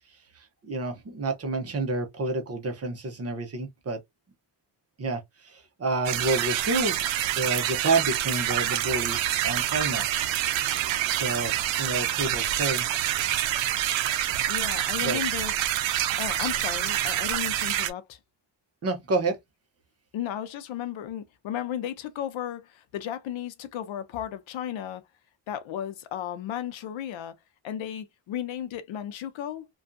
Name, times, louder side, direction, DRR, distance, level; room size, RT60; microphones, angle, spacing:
voice 1, 0.4-4.0 5.0-7.1 7.4-10.0 11.1-12.8 15.0-15.2 18.8-19.4, right 3 dB, 35° right, 0.7 m, -29 dB
sound 1, 6.1-17.9, right 12 dB, 90° right, 0.5 m, -27 dB
voice 2, 14.5-15.5 16.2-18.2 20.1-25.0 25.5-27.4 27.6-29.7, left 10 dB, 85° left, 0.6 m, -34 dB
2.6 x 2.3 x 2.5 m
cardioid pair, 140°, 45 cm